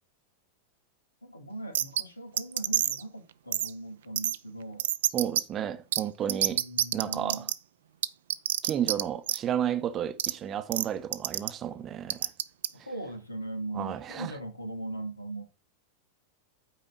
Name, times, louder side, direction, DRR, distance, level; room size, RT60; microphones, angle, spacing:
voice 1, 1.2-4.9 6.5-7.5 12.7-15.4, right 2 dB, 85° left, 1.8 m, -39 dB
sound 1, 1.7-2.0 2.4-3.0 3.5-3.7 4.2-4.4 4.8-5.4 5.9-6.0 6.3-7.5 8.0-9.0 9.3-9.4 10.2-10.3 10.7-10.9 11.1-11.5 12.1-12.7, right 11 dB, 60° right, 0.5 m, -27 dB
voice 2, 5.1-6.6 6.9-7.5 8.6-12.3 13.7-14.3, right 10 dB, 30° right, 0.8 m, -32 dB
8.9 x 5.0 x 5.9 m
figure-of-eight pair, 90°, 0 cm